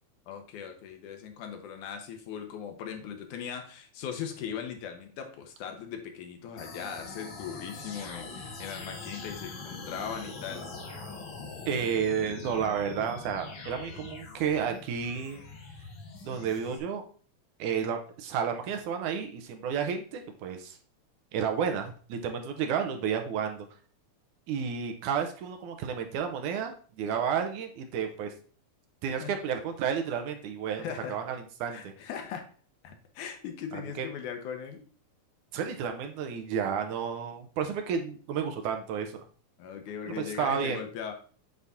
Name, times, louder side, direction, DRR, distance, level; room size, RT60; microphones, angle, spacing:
voice 1, 0.3-10.7 27.1-27.2 29.2-29.4 30.8-31.2 31.7-32.5 32.8-34.8 39.6-41.1, left 7 dB, 80° left, 5 dB, 2.4 m, -39 dB
sound 1, 6.6-16.8, left 3 dB, 55° left, 1.4 m, -43 dB
voice 2, 11.7-15.4 16.3-17.0 17.6-20.8 21.3-23.7 24.5-28.3 29.0-30.8 31.1-31.9 33.7-34.1 35.5-39.2 40.1-40.8, right 7 dB, 80° right, 5 dB, 2.3 m, -31 dB
8.0 x 4.1 x 3.5 m, 0.42 s
omnidirectional pair, 3.5 m